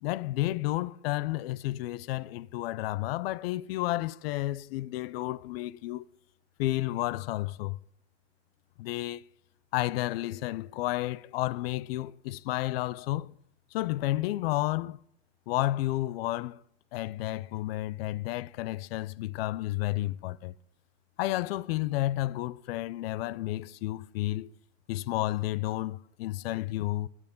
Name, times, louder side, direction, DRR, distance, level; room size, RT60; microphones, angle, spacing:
voice 1, 0.0-6.1 6.6-7.8 8.8-9.2 9.7-13.3 13.7-15.0 15.5-16.6 16.9-20.5 21.2-24.5 24.9-27.1, left 16 dB, 65° left, 0.5 m, -31 dB
11.0 x 9.0 x 5.2 m
supercardioid pair, 135°, 33 cm